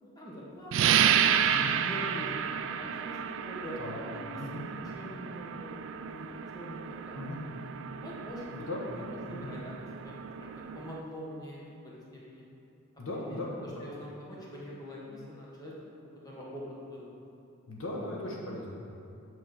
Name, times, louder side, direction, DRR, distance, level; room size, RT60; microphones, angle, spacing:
voice 1, 0.0-4.2 4.6-6.3 6.5-7.2 8.0-8.7 8.9-9.7 10.0-11.6 12.3-12.4 13.3-13.4 13.8-15.7 16.2-17.1, equal, 15° left, -5 dB, 1.3 m, -44 dB
sound 1, 0.7-11.0, right 8 dB, 60° right, 0.3 m, -31 dB
voice 2, 1.5-1.8 3.8-4.0 4.4-4.6 7.1-7.4 8.5-9.5 13.0-13.9 17.7-18.9, left 1 dB, 60° left, -3 dB, 1.2 m, -38 dB
6.3 x 5.4 x 7.0 m, 2.7 s
head